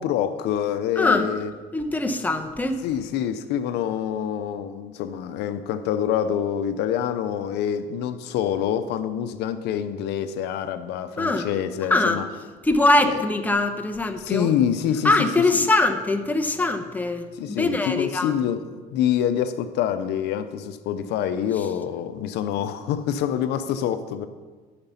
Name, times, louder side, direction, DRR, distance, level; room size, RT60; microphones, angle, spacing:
voice 1, 0.0-1.5 2.8-12.3 13.0-13.2 14.2-15.7 17.3-24.3, left 9 dB, 85° left, 11 dB, 0.6 m, -26 dB
voice 2, 1.0-1.3 1.7-2.8 11.2-11.5 11.9-12.2 12.6-14.5 15.0-18.3, left 2 dB, 10° left, 6 dB, 0.8 m, -22 dB
13.0 x 5.9 x 5.6 m, 1.4 s
cardioid pair, 110°, 17 cm